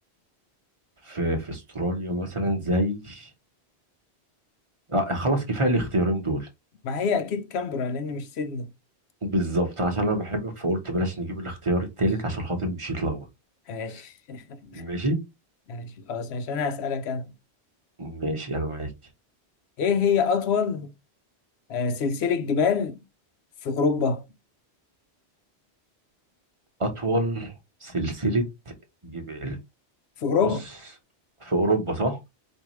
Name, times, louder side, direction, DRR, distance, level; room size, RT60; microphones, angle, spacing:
voice 1, 1.1-3.3 4.9-6.5 9.2-13.3 14.7-15.2 18.0-18.9 26.8-27.5 27.8-28.5 29.0-29.6 31.4-32.2, right 1 dB, 30° right, 0.9 m, -26 dB
voice 2, 6.8-8.7 13.7-14.8 15.7-17.3 19.8-20.9 21.7-23.0 23.6-24.2 30.2-30.6, left 5 dB, 75° left, 0.9 m, -26 dB
4.7 x 2.7 x 3.0 m
omnidirectional pair, 1.1 m